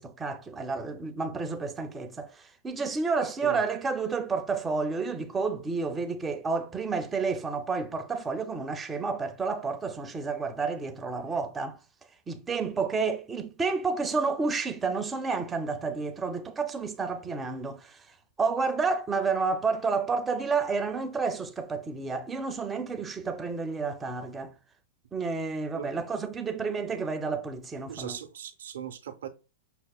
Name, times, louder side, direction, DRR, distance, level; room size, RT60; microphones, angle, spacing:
voice 1, 0.0-11.8 12.3-24.5 25.1-28.2, right 4 dB, 10° right, 0.4 m, -30 dB
voice 2, 27.9-29.3, right 9 dB, 80° right, 0.5 m, -38 dB
5.6 x 2.0 x 2.3 m
hypercardioid pair, 150°, 0 cm